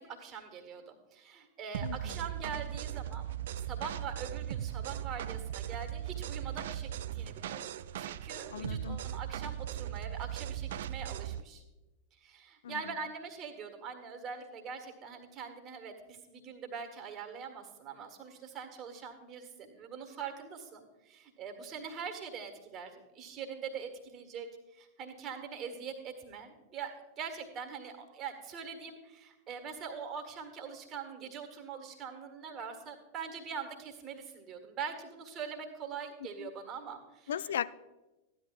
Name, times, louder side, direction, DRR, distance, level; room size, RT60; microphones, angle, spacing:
voice 1, 0.0-3.2 3.6-11.6 12.2-37.5, right 6 dB, 30° right, 5 dB, 1.6 m, -43 dB
sound 1, 1.7-11.4, right 11 dB, 60° right, 0.3 m, -38 dB
voice 2, 1.8-2.1 8.5-9.0 12.6-12.8 36.4-36.5 37.3-37.7, left 9 dB, 60° left, 16 dB, 0.4 m, -36 dB
14.5 x 11.0 x 2.4 m, 1.0 s
figure-of-eight pair, 90°, 0 cm